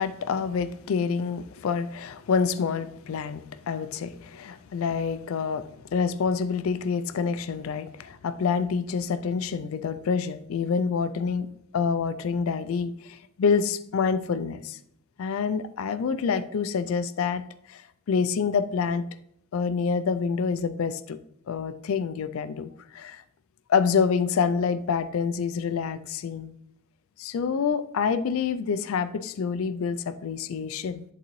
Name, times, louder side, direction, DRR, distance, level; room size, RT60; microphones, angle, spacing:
voice 1, 0.0-11.5 11.7-14.8 15.2-17.8 18.1-19.0 19.5-21.2 21.5-23.2 23.7-26.5 27.2-31.0, left 6 dB, 65° left, 0.4 m, -27 dB
11.0 x 3.8 x 3.1 m
head